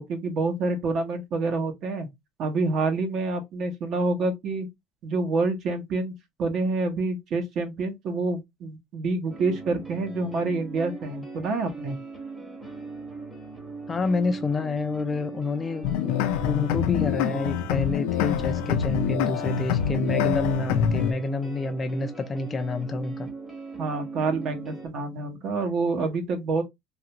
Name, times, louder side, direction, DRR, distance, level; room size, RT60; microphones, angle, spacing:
voice 1, 0.1-2.1 2.4-4.7 5.0-6.1 6.4-12.0 23.8-26.6, right 3 dB, 40° right, 0.9 m, -27 dB
sound 1, 9.3-24.9, right 3 dB, 5° right, 0.9 m, -39 dB
voice 2, 13.9-16.1 16.4-23.3, left 3 dB, 20° left, 0.3 m, -28 dB
sound 2, 15.8-21.1, left 9 dB, 80° left, 0.5 m, -25 dB
3.3 x 2.5 x 2.8 m
cardioid pair, 165°, 0 cm